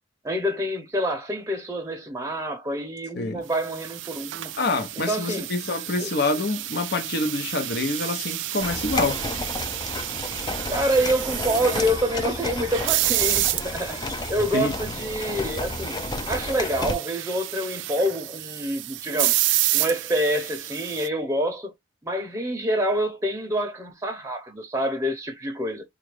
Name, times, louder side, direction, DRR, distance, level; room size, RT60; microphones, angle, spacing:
voice 1, 0.2-4.5 5.1-5.5 6.0-6.1 10.7-16.0 16.3-19.4 19.7-21.7 22.0-25.8, equal, 15° right, 0.7 m, -27 dB
sound 1, 3.6-21.1, right 15 dB, 90° right, 0.4 m, -30 dB
voice 2, 4.6-9.2 14.5-14.7, left 3 dB, 65° left, 0.8 m, -26 dB
sound 2, 8.6-16.9, left 3 dB, 25° left, 0.5 m, -32 dB
3.7 x 2.4 x 3.3 m
head